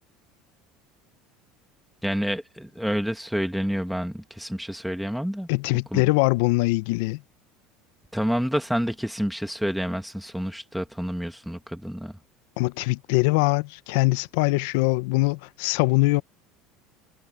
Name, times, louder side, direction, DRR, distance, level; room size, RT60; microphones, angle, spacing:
voice 1, 2.0-5.5 5.9-6.0 8.1-12.1, equal, ahead, 1.8 m, -28 dB
voice 2, 5.5-7.2 12.6-16.2, left 22 dB, 75° left, 0.6 m, -22 dB
supercardioid pair, 135°, 0 cm